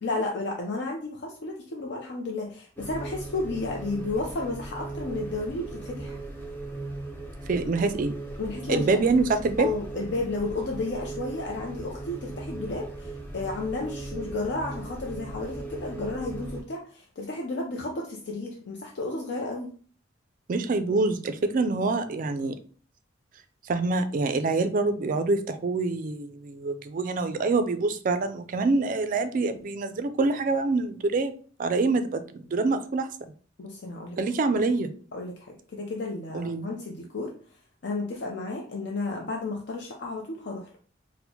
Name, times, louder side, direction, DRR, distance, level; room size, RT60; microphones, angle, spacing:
voice 1, 0.0-6.2 8.4-8.9 9.6-19.7 33.6-34.2 35.1-37.3 37.8-40.7, left 2 dB, 60° left, 0 dB, 0.5 m, -32 dB
sound 1, 2.8-16.6, right 2 dB, 10° left, 0.6 m, -38 dB
voice 2, 7.5-8.1 8.7-9.7 20.5-22.6 23.6-31.3 31.6-33.3 34.2-34.9 36.3-36.7, right 3 dB, 45° right, 10 dB, 0.3 m, -26 dB
4.3 x 2.1 x 2.7 m, 0.42 s
head